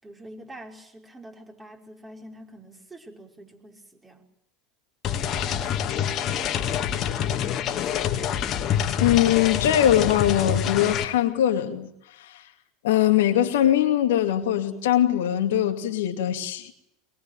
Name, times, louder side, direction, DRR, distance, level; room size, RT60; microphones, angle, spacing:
voice 1, 0.0-4.3 5.1-8.4, right 1 dB, 15° right, 5.6 m, -46 dB
sound 1, 5.0-11.0, left 9 dB, 45° left, 2.4 m, -26 dB
voice 2, 9.0-11.9 12.2-12.4 12.8-16.7, left 11 dB, 75° left, 2.4 m, -21 dB
23.0 x 22.5 x 9.1 m
hypercardioid pair, 85°, 0 cm